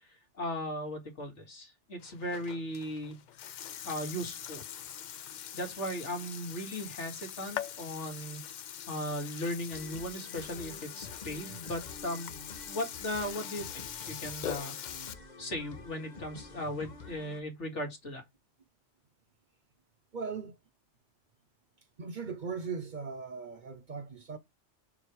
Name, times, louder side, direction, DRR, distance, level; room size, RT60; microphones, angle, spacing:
voice 1, 0.4-3.2 3.8-4.6 5.5-8.4 8.9-12.3 12.7-13.7 14.1-14.7 15.4-18.2, equal, 75° left, 2.4 m, -37 dB
Burping eructation, 2.0-15.1, left 9 dB, 55° left, 0.5 m, -43 dB
sound 1, 9.7-17.4, left 3 dB, 40° left, 1.1 m, -48 dB
voice 2, 20.1-20.6 22.0-24.4, right 5 dB, 50° right, 0.7 m, -38 dB
7.0 x 3.4 x 4.5 m
omnidirectional pair, 1.2 m